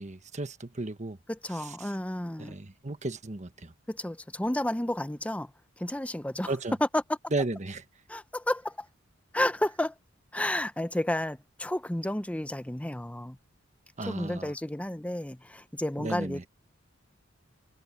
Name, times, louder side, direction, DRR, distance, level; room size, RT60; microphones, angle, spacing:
voice 1, 0.0-1.2 1.5-1.9 2.4-3.7 6.4-6.8 7.3-7.8 14.0-14.5 16.0-16.4, right 2 dB, 35° right, 1.3 m, -34 dB
voice 2, 1.3-2.5 3.9-5.5 5.8-6.5 6.9-7.0 8.1-8.9 9.3-9.9 10.3-13.4 14.1-16.5, left 1 dB, 5° left, 0.7 m, -31 dB
head